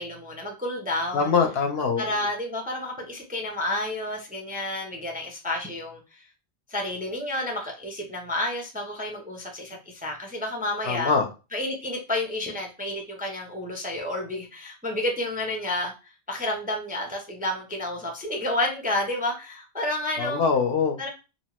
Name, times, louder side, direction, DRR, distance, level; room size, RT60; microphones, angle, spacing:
voice 1, 0.0-1.3 2.0-6.3 6.7-11.1 11.5-20.4 21.0-21.1, left 1 dB, 10° right, 1 dB, 0.4 m, -30 dB
voice 2, 1.1-2.0 10.9-11.3 20.2-21.0, left 5 dB, 70° left, 5 dB, 0.8 m, -23 dB
2.8 x 2.1 x 2.9 m, 0.30 s
omnidirectional pair, 1.1 m